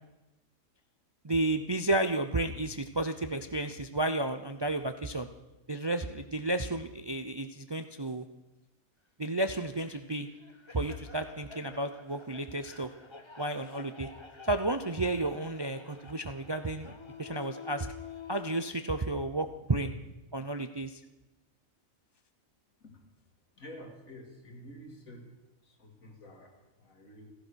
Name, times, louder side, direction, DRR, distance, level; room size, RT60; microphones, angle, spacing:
voice 1, 1.2-5.3 5.7-8.2 9.2-10.3 10.7-12.9 13.4-14.1 14.4-17.9 18.3-19.9 20.3-21.0, right 2 dB, 30° right, 8 dB, 0.4 m, -32 dB
sound 1, 9.8-18.7, left 6 dB, 20° left, 1.2 m, -49 dB
voice 2, 23.6-25.3 25.6-27.3, equal, 80° left, 3 dB, 2.9 m, -49 dB
15.5 x 15.0 x 6.3 m, 1.0 s
omnidirectional pair, 1.4 m